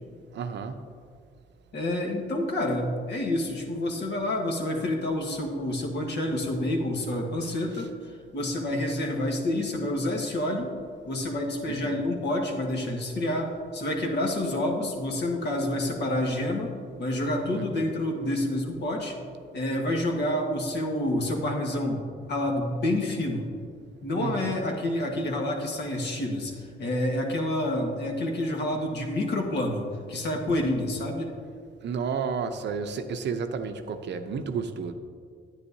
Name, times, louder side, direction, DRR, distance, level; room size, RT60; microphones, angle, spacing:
voice 1, 0.3-0.8 11.7-12.0 17.5-17.8 24.2-24.6 31.8-34.9, right 5 dB, 60° right, 8 dB, 0.7 m, -32 dB
voice 2, 1.7-7.9 8.3-10.7 11.0-16.7 17.0-19.2 19.5-23.5 24.0-31.3, left 1 dB, 60° left, 2 dB, 1.4 m, -28 dB
9.9 x 9.4 x 2.7 m, 2.2 s
cardioid pair, 90°, 20 cm